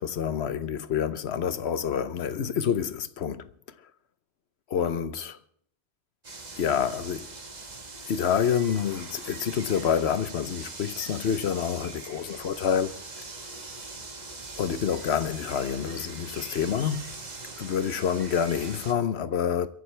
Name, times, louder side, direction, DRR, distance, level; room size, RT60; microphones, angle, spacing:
voice 1, 0.0-3.5 4.7-5.4 6.6-7.3 8.1-13.0 14.6-17.1 17.6-19.7, left 8 dB, 70° left, 1.1 m, -27 dB
sound 1, 6.2-18.9, right 3 dB, 40° right, 1.6 m, -42 dB
28.5 x 11.5 x 3.3 m
omnidirectional pair, 1.1 m